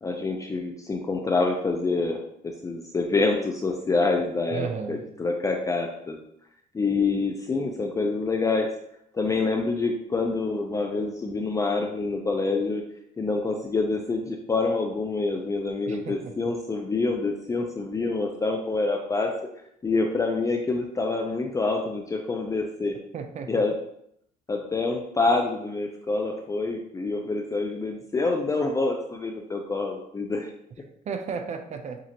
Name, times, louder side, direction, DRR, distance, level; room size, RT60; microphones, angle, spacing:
voice 1, 0.0-6.2 6.7-8.7 9.1-12.8 13.2-19.3 19.8-22.9 23.5-23.7 24.5-30.5, left 3 dB, 20° left, 2 dB, 0.5 m, -26 dB
voice 2, 4.5-5.0 15.9-16.3 23.1-23.5 31.1-32.0, right 6 dB, 45° right, 6 dB, 0.5 m, -33 dB
7.3 x 2.5 x 2.8 m, 0.74 s
cardioid pair, 110°, 17 cm